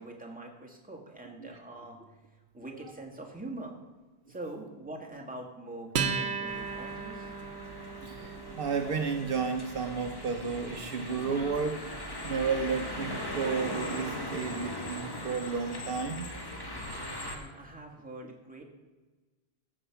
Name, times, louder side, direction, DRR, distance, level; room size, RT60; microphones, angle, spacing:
voice 1, 0.0-3.7 4.3-7.3 17.2-18.6, right 2 dB, 10° right, -1 dB, 1.7 m, -44 dB
Acoustic guitar, 5.9-12.8, right 6 dB, 90° right, 1.1 m, -38 dB
sound 1, 6.5-17.4, left 1 dB, 25° left, 1.4 m, -39 dB
voice 2, 8.0-16.3, right 5 dB, 65° right, 6 dB, 0.9 m, -32 dB
14.5 x 5.0 x 5.8 m, 1.3 s
omnidirectional pair, 1.0 m